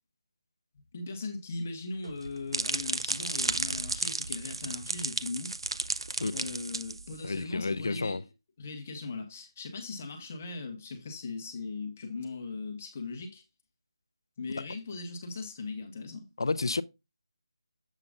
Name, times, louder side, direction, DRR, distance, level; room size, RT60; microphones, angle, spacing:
voice 1, 0.9-5.5 6.3-8.2 8.6-13.4 14.4-16.3, left 3 dB, 25° left, 1.2 m, -39 dB
sound 1, 2.0-7.4, right 3 dB, 65° right, 0.6 m, -33 dB
voice 2, 7.2-8.2 14.6-14.7 16.4-16.8, left 3 dB, 55° left, 0.5 m, -30 dB
7.5 x 7.4 x 2.4 m
figure-of-eight pair, 175°, 3 cm